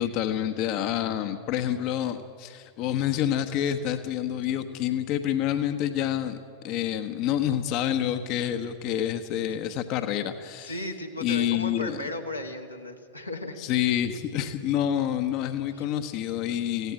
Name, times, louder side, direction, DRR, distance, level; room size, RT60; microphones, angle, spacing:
voice 1, 0.0-6.4 6.6-10.8 11.2-12.0 13.6-16.9, left 10 dB, 40° left, 8 dB, 1.0 m, -28 dB
voice 2, 10.6-13.6 13.8-14.0 15.7-15.9, left 1 dB, 85° left, 1 dB, 1.8 m, -35 dB
17.5 x 16.0 x 9.8 m, 2.3 s
figure-of-eight pair, 90°, 0 cm